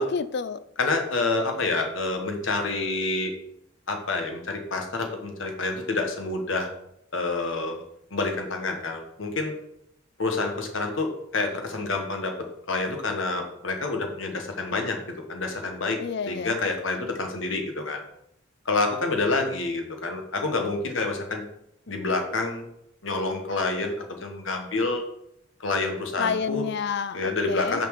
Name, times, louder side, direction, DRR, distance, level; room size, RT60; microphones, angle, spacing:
voice 1, 0.0-0.6 16.0-16.5 26.2-27.2 27.5-27.8, left 6 dB, 55° left, 0.4 m, -29 dB
voice 2, 0.8-3.3 3.9-6.7 7.1-7.8 8.1-9.5 10.2-12.3 12.7-16.0 16.3-18.0 18.6-21.4 21.9-22.6 23.0-25.0 25.6-26.7 27.1-27.9, left 3 dB, 75° left, 1.3 m, -28 dB
6.4 x 4.3 x 6.5 m
head